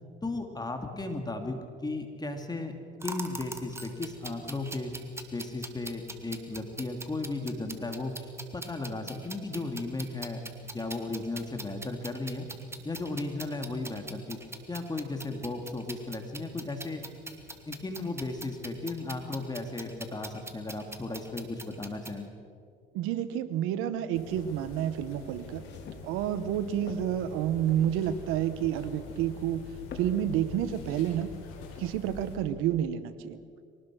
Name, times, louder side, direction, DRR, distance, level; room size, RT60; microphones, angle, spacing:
voice 1, 0.2-2.7 3.0-4.9 5.3-12.5 12.8-14.4 14.7-17.0 17.7-22.3, left 2 dB, 20° left, 5 dB, 2.5 m, -35 dB
sound 1, 3.0-22.2, right 2 dB, 10° right, 2.3 m, -43 dB
voice 2, 22.9-25.6 26.0-29.7 29.9-31.3 31.8-33.4, right 10 dB, 80° right, 12 dB, 1.1 m, -29 dB
sound 2, 24.1-32.4, left 3 dB, 80° left, 5.3 m, -46 dB
sound 3, 24.7-32.8, left 6 dB, 55° left, 3.2 m, -49 dB
23.5 x 19.0 x 6.3 m, 2.3 s
supercardioid pair, 90°, 21 cm